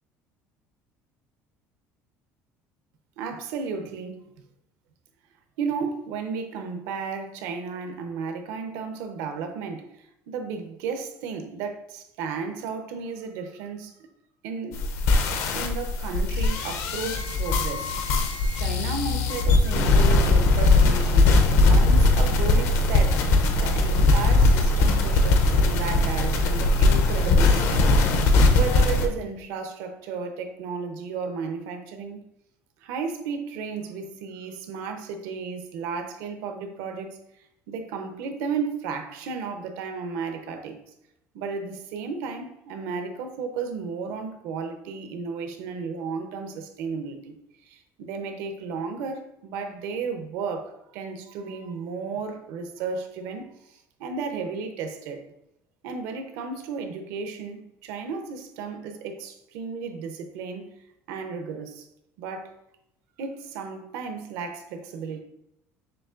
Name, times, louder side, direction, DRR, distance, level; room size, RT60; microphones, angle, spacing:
voice 1, 3.2-4.2 5.6-13.9 14.4-14.8 15.5-17.9 18.5-23.2 23.6-27.9 28.5-32.2 32.8-37.2 37.7-40.8 41.3-47.3 47.6-55.3 55.8-60.7 61.1-61.9 62.2-62.5 63.2-65.2, right 5 dB, 75° right, 0.7 m, -33 dB
sound 1, 14.7-29.1, left 2 dB, 55° left, 0.5 m, -20 dB
6.9 x 3.0 x 2.4 m
cardioid pair, 180°, 6 cm